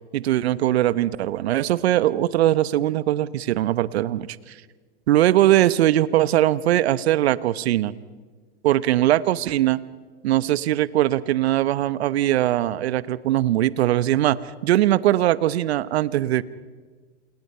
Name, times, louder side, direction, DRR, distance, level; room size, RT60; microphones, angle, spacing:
voice 1, 0.1-4.5 5.1-7.9 8.6-9.8 10.2-16.4, right 13 dB, 70° right, 17 dB, 1.1 m, -21 dB
28.5 x 28.0 x 5.6 m, 1.5 s
hypercardioid pair, 110°, 33 cm